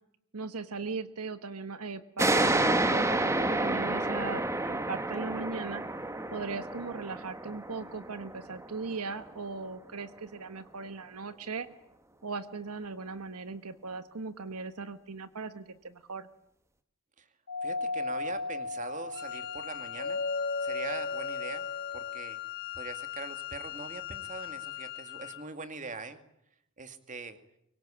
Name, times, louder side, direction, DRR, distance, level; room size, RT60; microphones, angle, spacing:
voice 1, 0.3-5.8 6.3-11.7 12.2-16.3, right 4 dB, 80° right, 11 dB, 1.3 m, -38 dB
sound 1, 2.2-9.4, right 2 dB, 15° right, 1.3 m, -30 dB
Doorbell, 17.5-22.3, left 3 dB, 60° left, 1.3 m, -35 dB
voice 2, 17.6-20.2 20.6-21.7 21.9-22.4 22.7-26.2 26.8-27.4, right 3 dB, 35° right, 9 dB, 2.3 m, -42 dB
Wind instrument woodwind instrument, 19.1-25.5, left 17 dB, 45° left, 2.2 m, -40 dB
24.5 x 22.5 x 8.6 m, 0.77 s
head